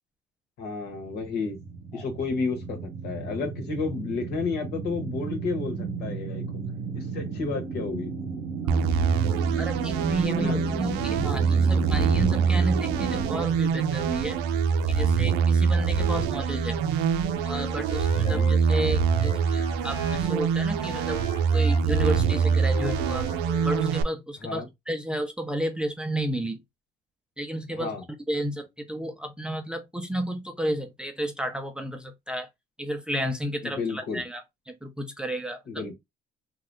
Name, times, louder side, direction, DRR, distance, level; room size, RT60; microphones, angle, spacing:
voice 1, 0.6-1.6 1.9-6.4 6.9-8.1 10.4-10.6 16.0-16.3 18.2-18.5 24.4-24.7 27.7-28.0 33.6-34.2 35.7-35.9, left 4 dB, 75° left, 1.2 m, -32 dB
sound 1, 0.8-13.4, right 5 dB, 55° right, 0.9 m, -34 dB
sound 2, 8.7-24.0, right 6 dB, 90° right, 0.4 m, -24 dB
voice 2, 9.6-14.4 14.9-16.8 17.4-21.2 21.5-23.3 23.6-26.6 27.4-28.0 28.3-32.5 32.8-34.4 34.7-35.8, right 1 dB, 5° right, 0.5 m, -32 dB
Wind instrument woodwind instrument, 17.4-24.0, left 3 dB, 35° left, 0.7 m, -40 dB
2.7 x 2.4 x 3.3 m
cardioid pair, 110°, 17 cm